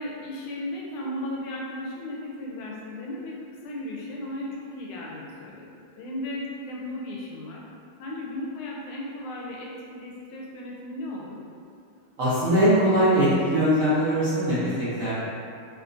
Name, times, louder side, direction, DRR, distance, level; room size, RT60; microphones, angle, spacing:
voice 1, 0.0-3.4 3.6-7.6 8.0-11.4, left 1 dB, 85° left, -3 dB, 1.5 m, -35 dB
voice 2, 12.2-15.1, equal, 60° right, -12 dB, 0.9 m, -21 dB
3.7 x 2.8 x 2.5 m, 2.4 s
omnidirectional pair, 2.3 m